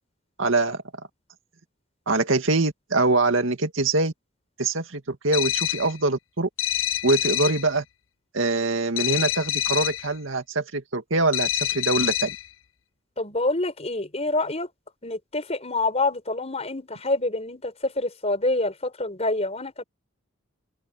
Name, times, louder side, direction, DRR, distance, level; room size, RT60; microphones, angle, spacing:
voice 1, 0.4-0.8 2.1-4.1 4.6-6.5 7.0-7.8 8.3-12.4, right 2 dB, 80° right, 2.2 m, -24 dB
sound 1, 5.3-6.0 6.6-7.7 9.0-10.1 11.3-12.5, left 15 dB, 75° left, 0.7 m, -26 dB
voice 2, 13.2-14.7 15.0-19.8, left 2 dB, 30° left, 5.4 m, -27 dB
open air
head